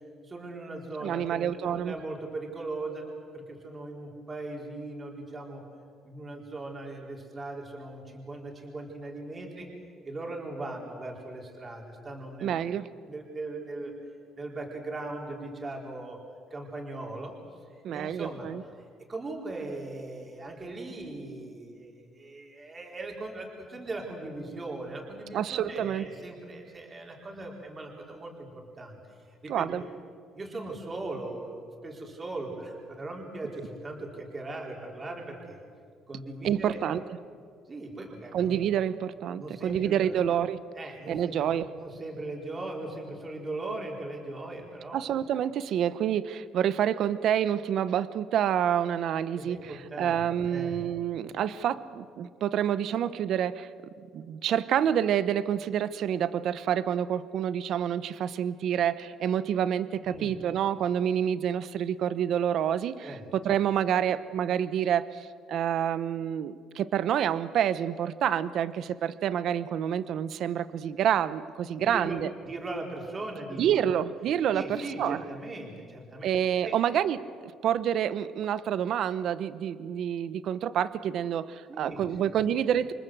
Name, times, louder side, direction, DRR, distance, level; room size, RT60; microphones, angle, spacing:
voice 1, 0.2-5.6 6.0-9.7 10.0-12.6 13.1-13.9 14.4-16.2 16.5-17.6 17.9-29.8 30.3-35.6 36.1-36.8 37.7-38.5 39.4-40.1 40.7-45.0 49.4-50.2 50.5-50.8 60.0-60.3 63.0-63.3 71.7-72.2 72.4-73.9 74.5-76.3 76.6-76.8 81.7-82.4, right 2 dB, 25° right, 0 dB, 4.5 m, -39 dB
voice 2, 1.0-2.0 12.4-12.9 17.8-18.6 25.3-26.1 29.5-29.8 36.4-37.0 38.3-40.6 41.1-41.7 44.9-53.7 54.1-72.3 73.6-74.6 75.0-75.2 76.2-82.9, right 9 dB, 60° right, 14 dB, 0.9 m, -28 dB
28.0 x 24.5 x 7.9 m, 2.2 s
cardioid pair, 140°, 0 cm